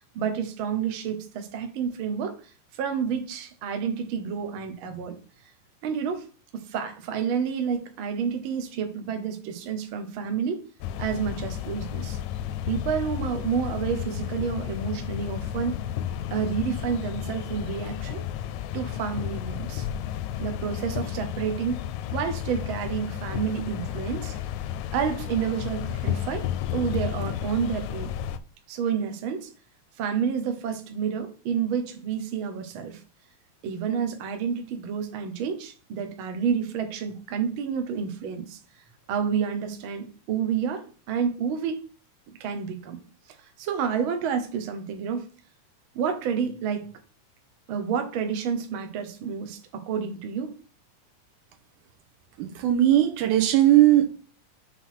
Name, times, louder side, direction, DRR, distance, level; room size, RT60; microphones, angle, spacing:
voice 1, 0.1-2.4 2.7-5.2 5.8-6.2 6.5-10.6 11.0-12.2 12.7-15.8 16.3-18.3 18.7-19.9 20.4-21.8 22.1-24.3 24.9-26.5 26.7-28.1 28.7-29.5 30.0-33.0 33.6-38.6 39.1-41.8 42.4-43.0 43.6-45.3 45.9-46.9 47.7-50.6, right 7 dB, 60° right, 1.4 m, -29 dB
sound 1, 10.8-28.4, left 11 dB, 80° left, 1.7 m, -32 dB
voice 2, 52.4-54.1, right 13 dB, 80° right, 2.3 m, -19 dB
6.4 x 4.0 x 5.7 m
omnidirectional pair, 3.6 m